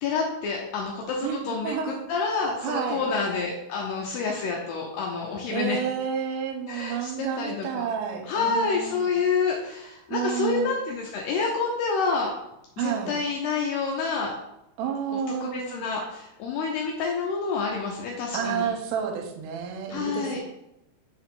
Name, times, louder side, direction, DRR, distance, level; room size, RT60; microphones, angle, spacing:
voice 1, 0.0-5.8 6.7-7.9 8.3-12.3 12.8-14.3 15.1-15.2 15.5-18.7 19.9-20.4, left 4 dB, 90° left, -1 dB, 2.3 m, -28 dB
voice 2, 1.2-2.0 2.6-3.0 5.5-9.0 10.1-10.7 12.8-13.2 14.8-15.8 18.3-20.4, right 8 dB, 85° right, 4 dB, 3.3 m, -30 dB
6.8 x 4.7 x 3.7 m, 0.86 s
omnidirectional pair, 5.7 m